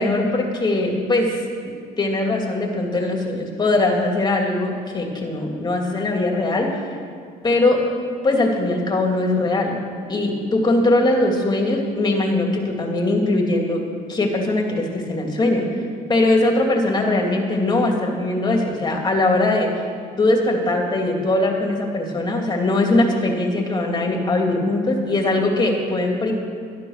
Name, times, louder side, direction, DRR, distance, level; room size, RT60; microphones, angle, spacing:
voice 1, 0.0-1.5 2.0-6.7 7.4-7.8 8.2-9.8 10.1-13.8 14.1-15.6 16.1-19.7 20.2-26.3, left 2 dB, 25° left, 1 dB, 2.7 m, -20 dB
12.0 x 11.5 x 6.6 m, 2.2 s
cardioid pair, 110°, 17 cm